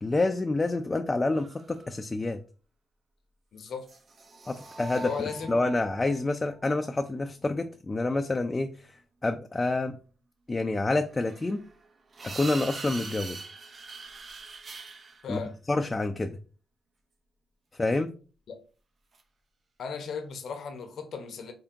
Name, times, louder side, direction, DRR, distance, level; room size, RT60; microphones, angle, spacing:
voice 1, 0.0-2.4 4.5-5.1 5.5-8.9 9.2-10.0 10.5-11.6 12.2-13.4 15.3-15.4 15.7-16.4 17.8-18.1, left 2 dB, 25° left, 0.4 m, -28 dB
sound 1, 1.3-2.0 3.8-6.7 11.1-15.4 19.1-19.2, right 3 dB, 50° right, 0.6 m, -43 dB
voice 2, 3.5-3.9 5.0-5.5 15.2-15.5 18.5-18.6 19.8-21.5, left 5 dB, 65° left, 0.7 m, -36 dB
3.6 x 3.5 x 2.8 m
supercardioid pair, 50°, 0 cm